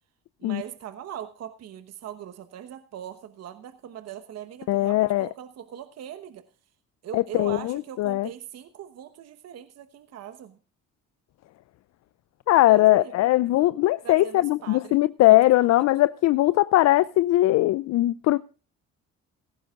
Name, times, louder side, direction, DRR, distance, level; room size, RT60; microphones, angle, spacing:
voice 1, 0.4-6.4 7.0-10.6 12.6-13.1 14.0-15.0 15.3-15.4, right 10 dB, 55° right, 1.1 m, -40 dB
voice 2, 4.7-5.3 7.1-8.3 12.5-18.4, left 16 dB, 60° left, 0.5 m, -20 dB
17.5 x 14.5 x 2.4 m
supercardioid pair, 70°, 30 cm